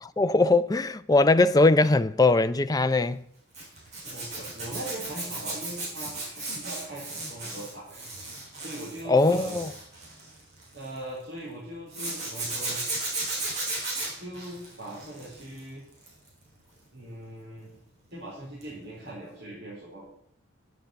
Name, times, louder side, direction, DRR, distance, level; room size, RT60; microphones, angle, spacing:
voice 1, 0.0-3.2 9.1-9.7, left 2 dB, 20° left, 0.4 m, -21 dB
Zipper (clothing), 3.5-11.0 11.9-15.6 15.9-16.3 18.6-18.8 19.0-19.1, right 2 dB, 35° right, 5.8 m, -35 dB
voice 2, 4.0-8.0 8.6-9.6 10.7-12.8 14.2-15.8 16.9-17.7 18.1-20.0, right 1 dB, 50° right, 4.3 m, -40 dB
9.3 x 8.8 x 7.9 m
head